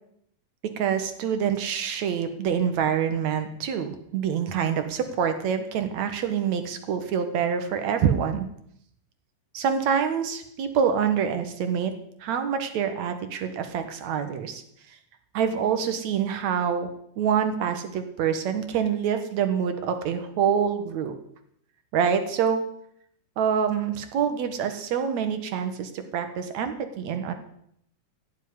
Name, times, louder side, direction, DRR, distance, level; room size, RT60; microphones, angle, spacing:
voice 1, 0.8-8.5 9.5-11.9 12.2-14.6 15.3-16.9 17.2-21.2 21.9-22.6 23.4-27.3, right 7 dB, 65° right, 8 dB, 2.7 m, -26 dB
16.5 x 7.5 x 9.8 m, 0.71 s
omnidirectional pair, 3.6 m